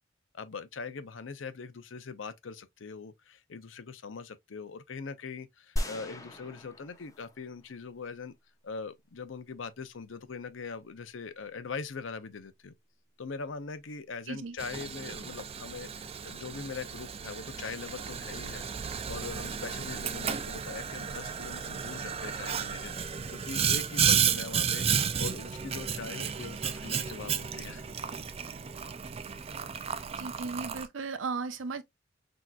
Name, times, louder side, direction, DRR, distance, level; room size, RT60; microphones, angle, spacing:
voice 1, 0.3-8.3 8.6-12.7 13.2-27.8, left 5 dB, 80° left, 0.6 m, -42 dB
sound 1, 5.8-8.0, equal, 20° left, 0.8 m, -37 dB
Boiling, 14.6-30.9, right 7 dB, 30° right, 0.4 m, -33 dB
voice 2, 30.2-31.8, right 4 dB, 85° right, 0.7 m, -36 dB
6.2 x 2.9 x 2.3 m
head